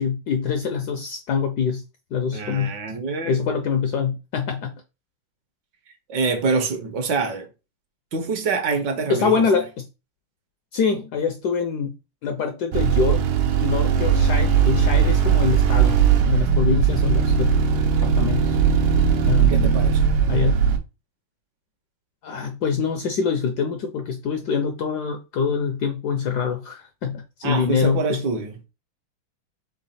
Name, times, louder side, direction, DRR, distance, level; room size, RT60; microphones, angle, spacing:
voice 1, 0.0-1.8 2.1-2.7 3.2-4.7 9.1-9.9 10.7-12.0 12.2-13.2 13.6-17.5 18.0-18.6 19.2-19.8 20.3-20.6 22.2-28.2, left 6 dB, 75° left, 0.9 m, -25 dB
voice 2, 2.3-3.4 6.1-7.5 8.1-9.4 19.4-20.0 27.4-28.6, right 4 dB, 65° right, 1.3 m, -25 dB
sound 1, 12.7-20.8, right 7 dB, 90° right, 1.5 m, -19 dB
3.8 x 3.3 x 4.1 m
omnidirectional pair, 2.2 m